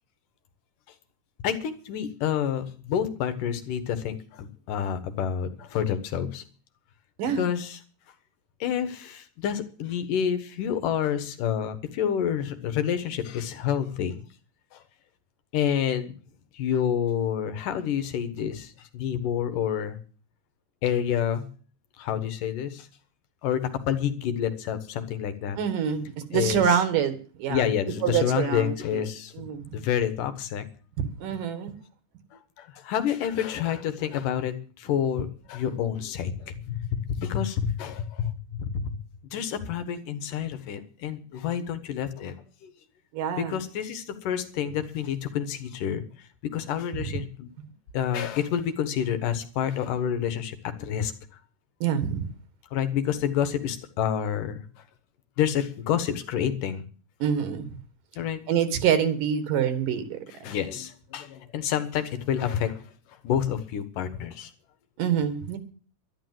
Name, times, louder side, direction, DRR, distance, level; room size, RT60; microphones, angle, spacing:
voice 1, 1.4-6.4 7.4-7.8 8.6-14.2 14.7-14.8 15.5-16.2 16.5-20.0 20.8-21.5 22.0-22.9 23.4-25.6 26.3-26.8 27.5-29.3 29.7-30.7 32.6-39.0 39.3-42.3 42.6-42.7 43.3-46.0 46.4-47.5 47.9-51.1 52.7-54.6 55.4-56.9 58.2-58.4 60.4-62.8 63.2-64.5, left 9 dB, 85° left, 10 dB, 3.0 m, -28 dB
voice 2, 25.6-27.7 28.0-29.0 29.3-29.8 31.0-31.7 43.1-43.6 47.0-47.2 51.8-52.3 57.2-57.7 58.5-60.2 65.0-65.6, right 8 dB, 85° right, 10 dB, 3.3 m, -26 dB
11.5 x 11.5 x 7.7 m, 0.41 s
omnidirectional pair, 3.7 m